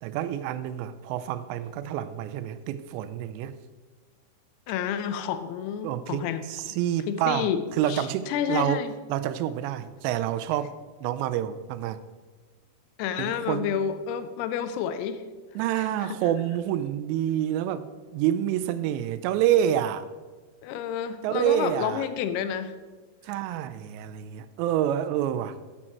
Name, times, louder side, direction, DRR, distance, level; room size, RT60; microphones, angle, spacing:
voice 1, 0.0-3.6 5.8-7.5 7.8-8.8 9.1-10.7 11.0-12.0 13.2-13.8 15.6-20.1 21.2-22.1 23.2-25.6, right 11 dB, 85° right, 13 dB, 2.8 m, -28 dB
voice 2, 4.7-6.8 7.1-8.9 13.0-15.2 15.8-16.2 20.6-22.7, left 8 dB, 80° left, 10 dB, 2.5 m, -30 dB
10.0 x 7.5 x 4.5 m, 1.3 s
omnidirectional pair, 5.0 m